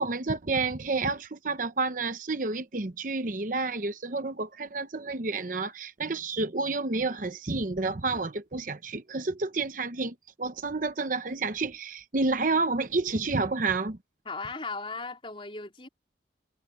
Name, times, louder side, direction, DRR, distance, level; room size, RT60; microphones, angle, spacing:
voice 1, 0.0-14.0, right 3 dB, 45° right, 0.9 m, -30 dB
voice 2, 14.2-15.9, left 3 dB, 30° left, 4.1 m, -37 dB
head